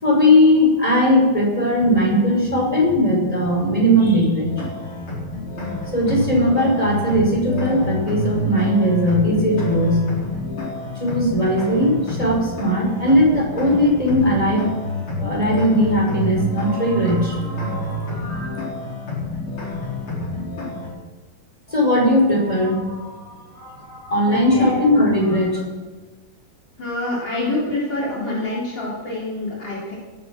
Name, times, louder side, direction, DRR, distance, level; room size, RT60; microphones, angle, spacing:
voice 1, 0.0-4.6 5.9-10.0 11.0-14.7 15.2-18.6 21.7-25.6, equal, 15° left, -2 dB, 5.5 m, -19 dB
sound 1, 4.4-20.9, left 1 dB, 75° left, 5.7 m, -28 dB
voice 2, 24.3-24.7 26.8-30.0, left 2 dB, 55° left, -5 dB, 4.8 m, -26 dB
18.5 x 11.5 x 6.2 m, 1.3 s
omnidirectional pair, 2.3 m